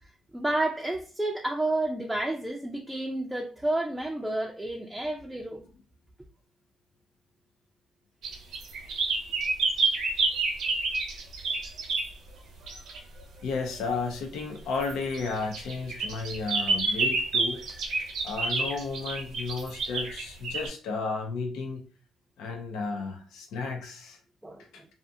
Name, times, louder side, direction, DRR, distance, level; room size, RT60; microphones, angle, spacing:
voice 1, 0.3-5.6 24.4-24.9, right 2 dB, 10° right, 0.4 m, -30 dB
sound 1, 8.2-12.1 12.7-13.0 14.8-20.7, right 3 dB, 80° right, 0.8 m, -28 dB
voice 2, 13.4-17.6 18.2-21.8 22.4-24.2 24.7-24.8, left 4 dB, 90° left, 0.5 m, -33 dB
2.4 x 2.4 x 2.6 m
cardioid pair, 90°, 0 cm